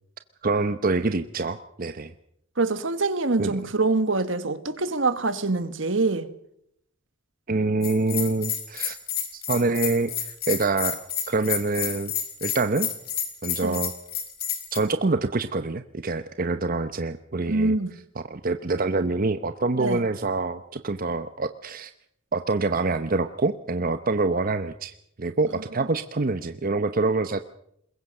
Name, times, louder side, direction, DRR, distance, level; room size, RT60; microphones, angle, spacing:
voice 1, 0.4-2.1 3.4-3.6 7.5-9.0 9.3-11.0 11.3-12.1 12.4-12.9 13.4-13.9 14.7-17.8 18.3-21.9 22.3-27.4, right 3 dB, 45° right, 0.9 m, -26 dB
voice 2, 2.6-6.3 13.6-13.8 17.5-17.9 19.8-20.0, right 3 dB, 70° right, 1.6 m, -24 dB
Bell, 7.8-14.8, left 9 dB, 55° left, 4.4 m, -30 dB
22.0 x 22.0 x 6.7 m
head